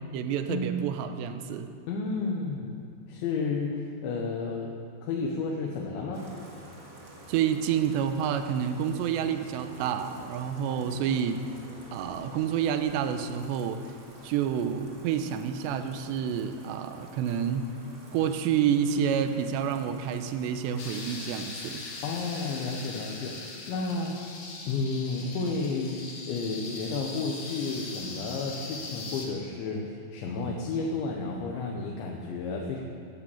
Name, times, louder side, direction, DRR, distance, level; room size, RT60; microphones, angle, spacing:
voice 1, 0.1-1.7 7.3-11.4 11.9-13.8 14.2-17.7 18.1-21.8, right 8 dB, 80° right, 8 dB, 2.9 m, -29 dB
voice 2, 1.9-2.8 3.1-4.7 5.0-6.3 10.7-11.2 22.0-23.4 23.7-24.2 24.7-32.8, left 4 dB, 80° left, 0 dB, 3.5 m, -32 dB
Bathtub (filling or washing), 6.1-21.1, right 1 dB, 55° right, 0.9 m, -50 dB
Keyboard (musical), 18.9-20.7, right 3 dB, 35° right, 2.6 m, -45 dB
sound 1, 20.8-29.3, left 3 dB, 50° left, 2.5 m, -41 dB
15.0 x 11.5 x 7.2 m, 2.4 s
omnidirectional pair, 5.2 m